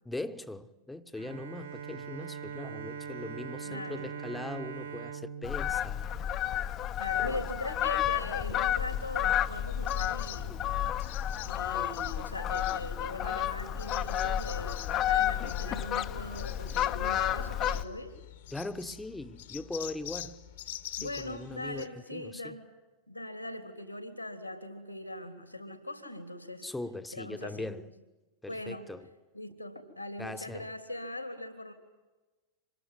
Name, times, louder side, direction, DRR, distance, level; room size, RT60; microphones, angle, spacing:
voice 1, 0.0-6.1 7.2-7.4 18.5-20.4 21.0-22.6 26.6-27.9 28.4-29.1 30.2-30.7, left 2 dB, 5° left, 1.2 m, -40 dB
Bowed string instrument, 1.1-6.8, right 7 dB, 75° right, 2.1 m, -42 dB
voice 2, 3.6-4.1 6.1-6.2 7.0-10.5 11.4-18.1 21.0-22.7 23.1-26.7 27.1-27.7 28.5-28.8 29.3-31.7, left 1 dB, 90° left, 3.2 m, -40 dB
Fowl, 5.4-17.8, left 11 dB, 35° left, 0.9 m, -31 dB
sound 1, 9.7-21.9, left 13 dB, 60° left, 1.6 m, -46 dB
26.0 x 21.5 x 9.4 m
figure-of-eight pair, 90°, 0 cm